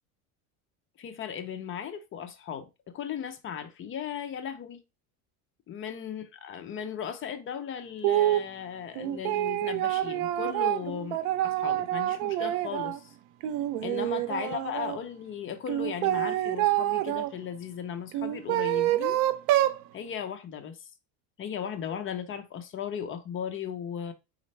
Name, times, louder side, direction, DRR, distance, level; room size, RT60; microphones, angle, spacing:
voice 1, 1.0-4.8 5.7-13.1 13.8-19.2 19.9-20.9 21.4-24.1, left 8 dB, 35° left, 0.6 m, -37 dB
sound 1, 8.0-8.5 9.0-13.0 13.4-15.0 15.7-17.3 18.1-19.8, right 14 dB, 75° right, 0.6 m, -27 dB
4.3 x 3.9 x 3.2 m
cardioid pair, 140°, 38 cm